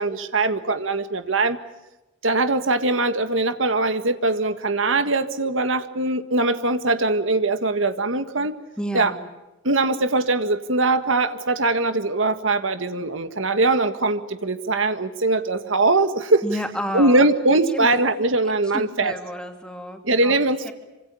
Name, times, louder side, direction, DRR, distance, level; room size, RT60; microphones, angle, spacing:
voice 1, 0.0-1.6 2.2-8.6 8.9-9.1 9.6-16.4 16.9-19.2 20.0-20.7, right 2 dB, 80° right, 10 dB, 1.7 m, -21 dB
voice 2, 8.8-9.2 16.4-17.2 17.6-17.9 18.7-20.3 20.6-20.7, equal, 5° left, 5 dB, 2.8 m, -31 dB
27.0 x 25.5 x 7.1 m, 1.0 s
head